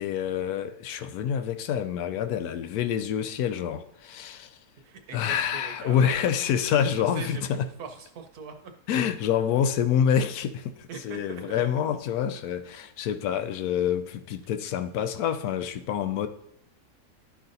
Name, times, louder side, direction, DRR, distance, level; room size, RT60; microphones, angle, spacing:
voice 1, 0.0-4.6 5.1-7.6 8.9-16.3, left 8 dB, 75° left, 1.1 m, -27 dB
voice 2, 4.8-6.3 6.9-8.7 10.9-11.4, right 5 dB, 75° right, 1.3 m, -41 dB
12.5 x 5.0 x 2.7 m
omnidirectional pair, 1.7 m